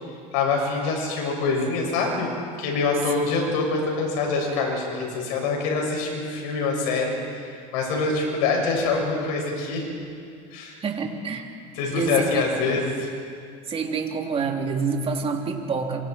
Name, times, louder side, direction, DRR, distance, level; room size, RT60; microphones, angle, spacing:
voice 1, 0.3-2.3 2.6-9.9 10.5-10.8 11.7-13.1, left 4 dB, 75° left, 0 dB, 6.7 m, -25 dB
voice 2, 10.8-11.4 11.9-12.2 12.7-12.8 13.7-16.0, right 5 dB, 30° right, 1 dB, 3.4 m, -27 dB
27.0 x 24.5 x 4.6 m, 2.3 s
supercardioid pair, 105°, 19 cm